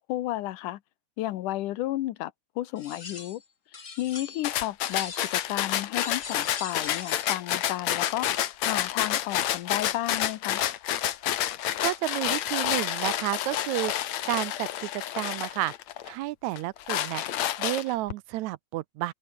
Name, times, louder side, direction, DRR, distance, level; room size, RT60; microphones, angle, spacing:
voice 1, 0.1-0.8 1.2-3.4 4.0-10.6, left 15 dB, 90° left, 2.5 m, -32 dB
sound 1, 2.8-3.4 3.7-4.5 4.8-5.5 6.0-7.3, left 5 dB, 30° left, 1.6 m, -41 dB
sound 2, 4.4-16.1 16.6-18.1, left 12 dB, 65° left, 2.4 m, -29 dB
voice 2, 11.8-13.9 14.3-15.7 16.1-17.2 17.6-19.1, right 16 dB, 80° right, 1.9 m, -31 dB
omnidirectional pair, 3.5 m